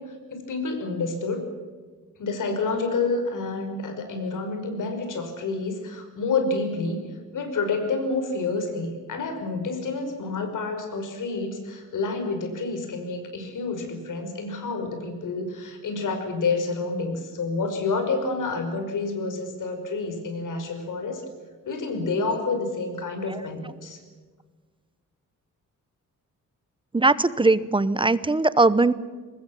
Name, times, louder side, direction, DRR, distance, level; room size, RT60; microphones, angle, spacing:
voice 1, 0.0-1.5 2.2-21.2 21.7-24.0, left 3 dB, 75° left, 6 dB, 5.6 m, -29 dB
voice 2, 26.9-28.9, right 2 dB, 15° right, 16 dB, 0.8 m, -20 dB
23.5 x 20.5 x 7.4 m, 1.4 s
wide cardioid pair, 135°, 31 cm